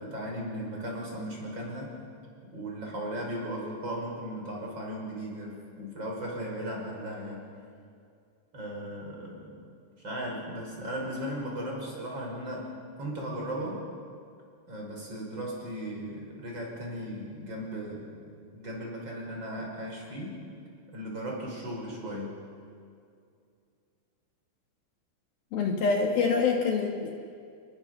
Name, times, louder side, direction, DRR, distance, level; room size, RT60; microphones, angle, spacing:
voice 1, 0.0-1.9 2.4-7.5 8.5-9.6 10.0-13.9 14.7-20.4 20.9-22.5, equal, 25° right, -2 dB, 5.7 m, -37 dB
voice 2, 25.5-27.1, left 5 dB, 65° left, 1 dB, 3.2 m, -25 dB
29.5 x 21.5 x 6.7 m, 2.3 s
omnidirectional pair, 5.1 m